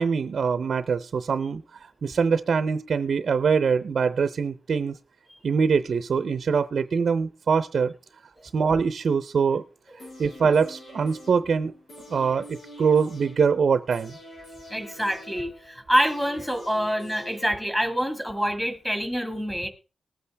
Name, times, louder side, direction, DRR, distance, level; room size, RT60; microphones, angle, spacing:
voice 1, 0.0-5.0 5.4-7.9 8.5-9.6 10.2-11.7 12.1-14.2, right 5 dB, 55° right, 12 dB, 0.6 m, -23 dB
sound 1, 10.0-18.0 18.3-18.4, left 1 dB, 75° left, 7.6 m, -45 dB
voice 2, 14.7-19.7, equal, 5° left, 6 dB, 1.9 m, -26 dB
20.0 x 8.5 x 3.4 m, 0.33 s
wide cardioid pair, 150°, 0 cm